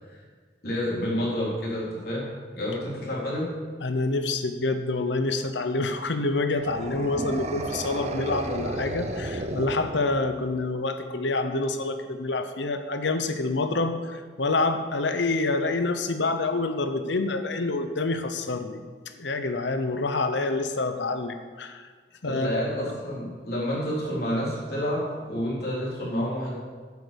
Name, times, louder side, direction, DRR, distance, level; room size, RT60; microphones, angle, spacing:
voice 1, 0.6-2.3 2.5-3.5 22.2-26.5, equal, 55° left, -5 dB, 4.0 m, -29 dB
voice 2, 3.8-18.8 19.1-21.9 22.2-22.9, left 2 dB, 85° left, 8 dB, 0.9 m, -27 dB
sound 1, 6.6-10.4, right 1 dB, 40° right, 0.8 m, -33 dB
9.7 x 8.1 x 7.0 m, 1.5 s
head